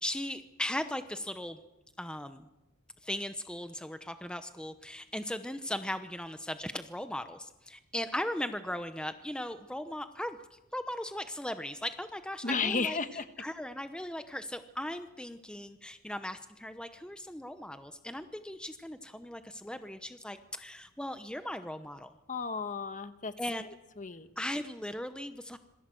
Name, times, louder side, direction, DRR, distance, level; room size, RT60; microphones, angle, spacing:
voice 1, 0.0-1.6 2.0-2.5 3.0-13.0 13.4-22.1 23.4-23.7 24.4-25.6, left 1 dB, 5° left, 9 dB, 0.8 m, -38 dB
voice 2, 12.4-13.2 22.3-23.3 24.0-24.3, left 4 dB, 35° left, 10 dB, 1.4 m, -33 dB
27.0 x 21.5 x 7.7 m, 1.0 s
head